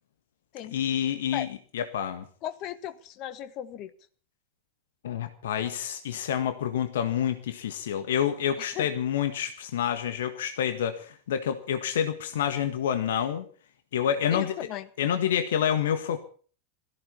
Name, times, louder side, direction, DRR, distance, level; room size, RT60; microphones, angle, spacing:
voice 1, 0.7-1.5 1.7-2.3 5.0-13.4 13.9-14.5 15.0-16.2, left 9 dB, 60° left, 10 dB, 1.6 m, -28 dB
voice 2, 2.4-3.9 8.6-8.9 14.3-14.9, left 11 dB, 40° left, 13 dB, 1.5 m, -36 dB
17.5 x 15.0 x 5.6 m, 0.42 s
figure-of-eight pair, 90°, 0 cm